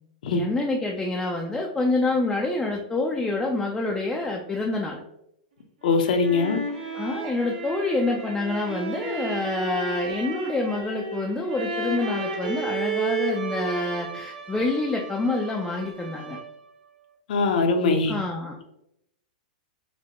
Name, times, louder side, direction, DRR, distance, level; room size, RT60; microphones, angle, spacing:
voice 1, 0.3-5.0 6.9-16.4 18.1-18.6, left 2 dB, 10° left, -1 dB, 0.3 m, -27 dB
voice 2, 5.8-6.6 17.3-18.2, left 4 dB, 70° left, 4 dB, 0.6 m, -22 dB
sound 1, 5.8-16.7, right 3 dB, 85° right, 0.9 m, -33 dB
4.1 x 2.1 x 2.9 m, 0.79 s
hypercardioid pair, 145°, 5 cm